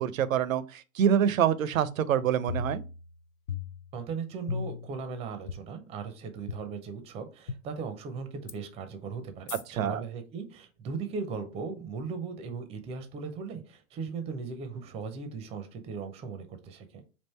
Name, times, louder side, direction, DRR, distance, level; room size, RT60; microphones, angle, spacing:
voice 1, 0.0-2.8 9.7-10.0, right 9 dB, 80° right, 0.6 m, -26 dB
sound 1, 2.5-3.2 3.5-4.1 4.5-5.0 5.5-5.6 6.5-6.6 7.5-7.6 8.5-8.6 9.5-9.6, left 5 dB, 85° left, 0.6 m, -36 dB
voice 2, 3.9-17.0, right 5 dB, 15° right, 0.4 m, -38 dB
3.6 x 2.5 x 4.2 m
hypercardioid pair, 110°, 40 cm